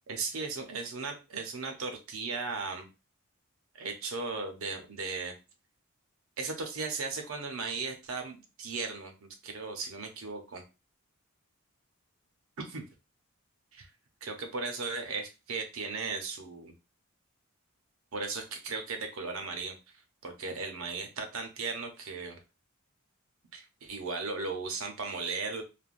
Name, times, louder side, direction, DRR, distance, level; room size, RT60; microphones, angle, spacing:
voice 1, 0.1-2.9 3.7-5.3 6.4-10.6 12.7-12.8 13.7-13.9 14.2-16.7 18.1-19.7 20.2-22.4 23.5-25.6, right 4 dB, 70° right, 5 dB, 0.7 m, -36 dB
3.3 x 2.2 x 2.5 m, 0.28 s
head